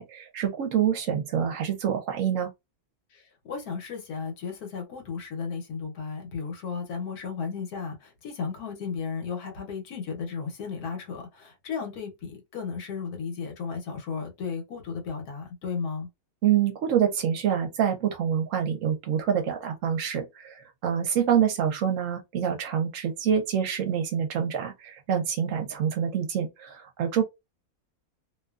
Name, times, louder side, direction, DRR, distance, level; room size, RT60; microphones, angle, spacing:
voice 1, 0.0-2.5 16.4-27.2, right 8 dB, 65° right, 0.9 m, -26 dB
voice 2, 3.1-16.1, left 5 dB, 90° left, 1.4 m, -34 dB
2.8 x 2.3 x 2.3 m
omnidirectional pair, 1.5 m